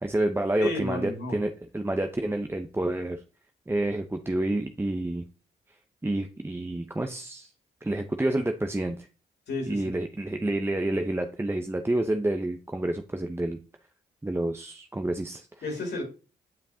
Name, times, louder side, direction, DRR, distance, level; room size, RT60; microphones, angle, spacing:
voice 1, 0.0-3.2 3.7-5.3 6.0-7.5 7.8-9.1 9.7-13.6 14.2-15.5, right 1 dB, 15° right, 5 dB, 0.7 m, -29 dB
voice 2, 0.6-1.4 9.5-9.9 15.6-16.0, left 2 dB, 70° left, 1 dB, 2.4 m, -32 dB
8.8 x 5.3 x 2.8 m, 0.34 s
supercardioid pair, 50°, 18 cm